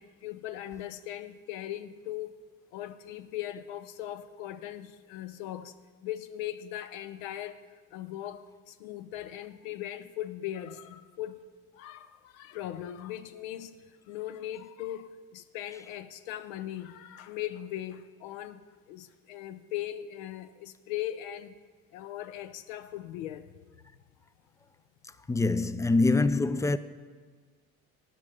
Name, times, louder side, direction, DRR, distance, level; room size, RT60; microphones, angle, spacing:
voice 1, 0.0-2.4 2.7-5.7 6.0-7.6 7.9-11.4 11.7-21.6 21.9-23.5, left 12 dB, 80° left, 0.6 m, -39 dB
voice 2, 25.3-26.8, left 3 dB, 10° left, 0.3 m, -24 dB
11.0 x 5.4 x 7.6 m
hypercardioid pair, 55°, 40 cm